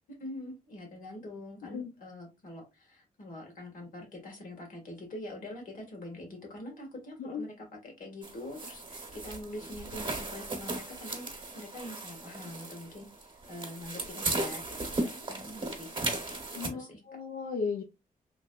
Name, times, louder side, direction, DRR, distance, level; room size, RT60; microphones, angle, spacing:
voice 1, 0.2-17.0, left 1 dB, 65° left, 1 dB, 1.7 m, -44 dB
sound 1, 8.2-16.7, right 2 dB, 35° right, 0.9 m, -36 dB
voice 2, 16.5-17.8, left 5 dB, 90° left, 2 dB, 0.6 m, -35 dB
3.2 x 3.2 x 2.3 m, 0.24 s
wide cardioid pair, 155°, 15 cm